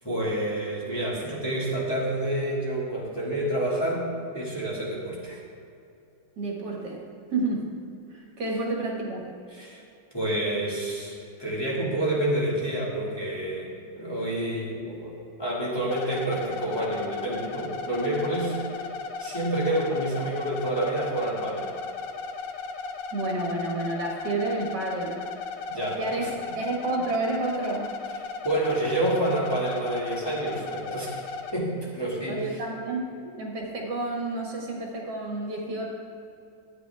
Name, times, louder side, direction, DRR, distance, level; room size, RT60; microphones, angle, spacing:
voice 1, 0.0-4.1 4.3-5.4 9.5-9.8 10.1-18.6 19.2-21.7 25.7-26.3 28.4-31.2 31.5-32.4, right 1 dB, 15° left, -6 dB, 1.9 m, -28 dB
voice 2, 6.4-7.0 7.3-7.6 8.1-9.2 23.1-25.1 26.0-26.3 26.5-27.9 32.3-33.0 33.4-35.8, right 2 dB, 70° right, -1 dB, 2.1 m, -30 dB
sound 1, 15.9-31.5, left 5 dB, 80° left, 1.4 m, -36 dB
12.5 x 9.0 x 3.4 m, 2.6 s
omnidirectional pair, 2.0 m